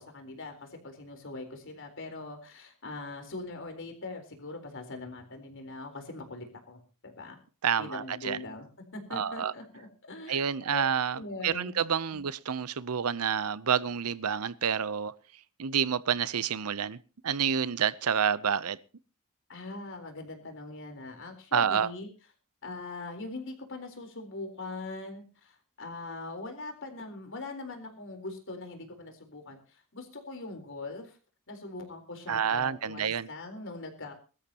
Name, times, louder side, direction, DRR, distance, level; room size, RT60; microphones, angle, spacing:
voice 1, 0.0-7.4 7.8-8.7 8.9-10.8 11.1-11.7 12.1-12.2 19.5-22.1 22.6-31.2 31.5-34.1, left 2 dB, 60° left, 4.0 m, -42 dB
voice 2, 7.6-8.4 9.1-9.5 10.3-15.1 15.6-17.0 17.2-18.8 21.5-21.9 32.3-33.3, right 7 dB, 80° right, 0.7 m, -28 dB
22.5 x 13.0 x 2.9 m
head